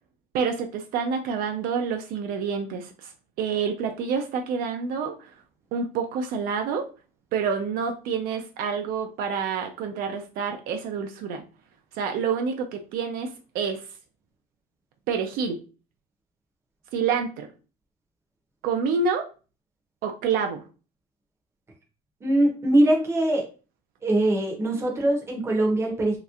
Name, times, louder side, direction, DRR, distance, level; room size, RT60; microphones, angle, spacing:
voice 1, 0.3-3.1 3.4-5.3 5.7-6.8 7.3-11.4 11.9-13.8 15.1-15.6 16.9-17.5 18.6-19.2 20.0-20.6, right 6 dB, 60° right, 5 dB, 0.4 m, -28 dB
voice 2, 22.2-23.5 24.0-26.2, right 1 dB, 15° right, 1 dB, 0.7 m, -22 dB
3.1 x 2.9 x 2.4 m, 0.35 s
cardioid pair, 170°, 17 cm